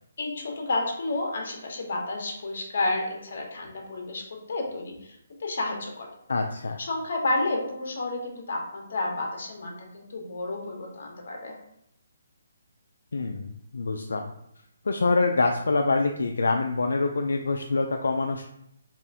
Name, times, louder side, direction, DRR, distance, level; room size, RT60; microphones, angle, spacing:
voice 1, 0.2-6.1 6.8-11.6, left 2 dB, 60° left, 1 dB, 1.1 m, -31 dB
voice 2, 6.3-6.8 13.1-14.3 14.9-18.4, left 3 dB, 80° left, 3 dB, 0.3 m, -25 dB
4.1 x 2.5 x 3.5 m, 0.75 s
hypercardioid pair, 160°, 0 cm